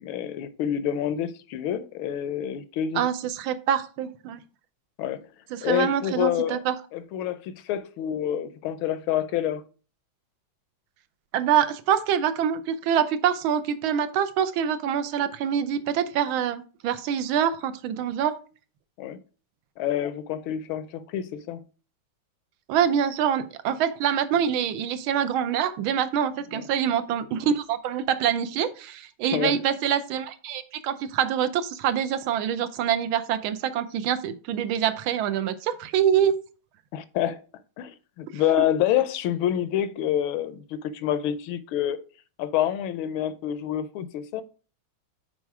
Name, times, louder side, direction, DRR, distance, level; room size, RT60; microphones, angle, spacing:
voice 1, 0.0-3.0 5.0-5.2 5.6-6.6 6.9-9.6 19.0-19.2 19.8-21.6 26.5-26.7 29.3-29.6 36.9-37.4 37.8-42.0 42.4-44.4, left 10 dB, 85° left, 1.4 m, -27 dB
voice 2, 2.9-4.4 5.5-6.7 11.3-18.4 22.7-36.3, right 9 dB, 85° right, 1.5 m, -25 dB
6.1 x 4.3 x 4.6 m
omnidirectional pair, 2.2 m